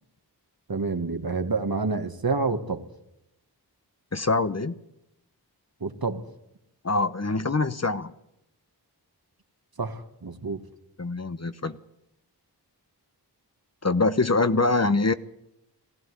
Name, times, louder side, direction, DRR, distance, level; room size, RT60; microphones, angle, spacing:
voice 1, 0.7-2.8 5.8-6.2 9.8-10.6, right 4 dB, 60° right, 7 dB, 1.9 m, -28 dB
voice 2, 4.1-4.8 6.8-8.1 11.0-11.8 13.8-15.1, left 3 dB, 40° left, 12 dB, 1.0 m, -24 dB
19.0 x 15.0 x 9.7 m, 0.84 s
wide cardioid pair, 50°, 41 cm